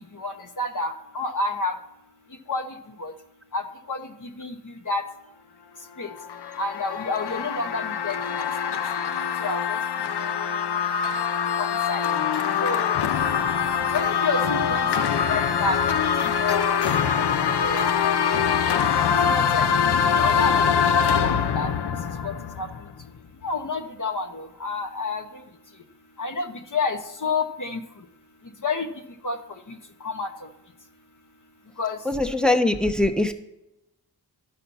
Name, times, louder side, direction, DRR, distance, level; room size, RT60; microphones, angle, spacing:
voice 1, 0.2-1.7 2.5-2.6 3.0-3.1 3.5-3.6 3.9-4.0 4.4-4.5 4.9-5.0 6.0-6.1 6.6-8.2 9.4-9.6 11.6-12.0 12.6-12.9 13.9-14.8 15.3-16.1 16.4-16.8 17.3-17.9 19.0-19.9 20.2-20.6 21.2-21.7 22.2-22.3 22.6-22.7 23.4-25.2 26.2-27.8 28.6-28.9 29.2-29.4 30.0-30.3 31.8-32.0, left 3 dB, 50° left, 5 dB, 1.0 m, -29 dB
sound 1, 6.1-23.0, left 7 dB, 80° left, 0.7 m, -24 dB
voice 2, 32.0-33.3, left 2 dB, ahead, 6 dB, 0.8 m, -22 dB
11.5 x 5.7 x 5.5 m, 0.89 s
wide cardioid pair, 85°, 40 cm